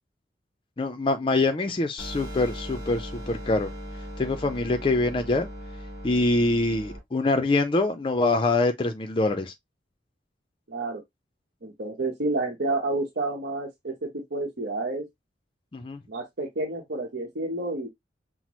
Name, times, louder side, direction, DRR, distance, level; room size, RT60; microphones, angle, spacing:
voice 1, 0.8-3.7 4.2-5.5 6.0-9.5 15.7-16.0, left 2 dB, 30° left, 0.4 m, -24 dB
sound 1, 2.0-7.0, equal, 15° right, 2.9 m, -38 dB
voice 2, 10.7-11.0 11.6-15.1 16.1-17.9, right 2 dB, 70° right, 0.9 m, -30 dB
5.7 x 2.0 x 3.0 m
head